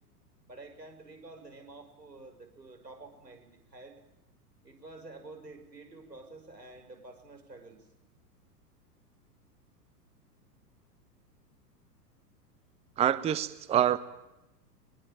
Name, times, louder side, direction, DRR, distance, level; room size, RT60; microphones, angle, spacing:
voice 1, 0.4-4.0 4.6-7.9, right 2 dB, 85° right, 5 dB, 6.3 m, -49 dB
voice 2, 13.0-14.0, right 10 dB, 15° right, 16 dB, 0.8 m, -26 dB
23.5 x 21.5 x 9.0 m, 0.92 s
figure-of-eight pair, 100°, 48 cm